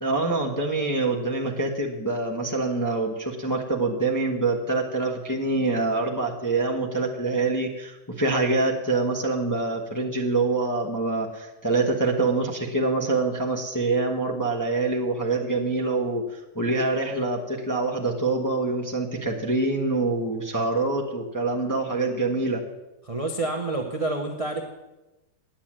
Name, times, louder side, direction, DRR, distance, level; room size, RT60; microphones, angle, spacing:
voice 1, 0.0-22.6, right 3 dB, 15° left, -2 dB, 0.8 m, -25 dB
voice 2, 23.0-24.6, right 2 dB, 30° right, 3 dB, 0.6 m, -28 dB
9.7 x 8.8 x 7.4 m, 1.0 s
omnidirectional pair, 2.2 m